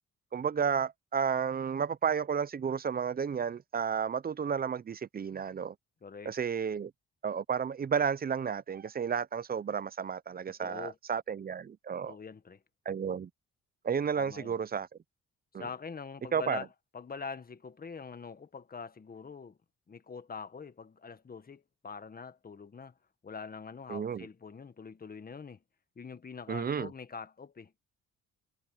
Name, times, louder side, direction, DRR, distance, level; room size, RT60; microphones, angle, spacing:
voice 1, 0.3-5.7 6.3-6.9 7.2-12.2 12.9-13.3 13.8-14.9 15.5-15.7 16.3-16.6 23.9-24.3 26.5-26.9, right 7 dB, 30° right, 0.6 m, -32 dB
voice 2, 6.0-6.3 10.5-11.0 12.1-12.6 14.1-14.5 15.6-16.7 16.9-19.6 19.9-22.9 23.2-25.6 26.0-27.7, left 5 dB, 30° left, 1.5 m, -44 dB
cardioid pair, 90°, 30 cm